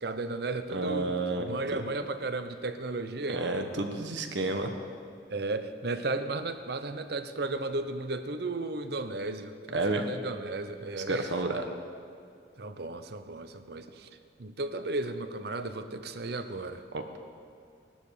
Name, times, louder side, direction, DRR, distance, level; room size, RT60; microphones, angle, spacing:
voice 1, 0.0-3.5 5.3-11.3 12.6-14.1 14.4-16.8, right 2 dB, 60° right, 10 dB, 0.8 m, -34 dB
voice 2, 0.7-1.8 3.3-4.8 9.7-10.0 11.1-11.7 16.9-17.0, right 2 dB, 75° right, 5 dB, 1.3 m, -30 dB
18.0 x 12.5 x 5.0 m, 2.4 s
head